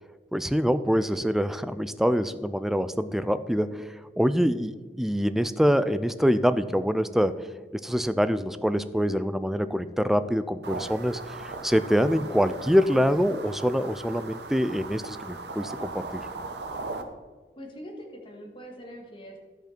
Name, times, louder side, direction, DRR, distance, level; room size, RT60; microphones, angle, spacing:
voice 1, 0.3-3.9 4.2-7.4 7.7-16.2, equal, ahead, 12 dB, 0.3 m, -25 dB
sound 1, 10.6-17.0, right 3 dB, 70° right, 0.9 m, -38 dB
voice 2, 17.5-19.4, equal, 30° left, 0 dB, 1.7 m, -43 dB
13.0 x 5.4 x 4.4 m, 1.4 s
head